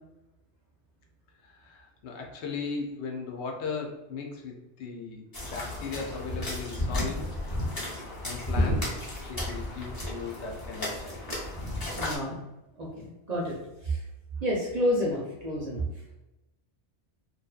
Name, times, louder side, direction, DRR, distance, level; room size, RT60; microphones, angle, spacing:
voice 1, 1.4-7.3 8.2-9.0 9.3-11.2, left 4 dB, 75° left, 1 dB, 0.9 m, -37 dB
sound 1, 5.3-12.2, left 1 dB, 25° left, 0.5 m, -32 dB
voice 2, 12.0-12.4 12.8-13.6 13.8-14.0 14.4-15.9, equal, 50° right, -4 dB, 0.5 m, -29 dB
2.6 x 2.2 x 2.3 m, 0.99 s
omnidirectional pair, 1.2 m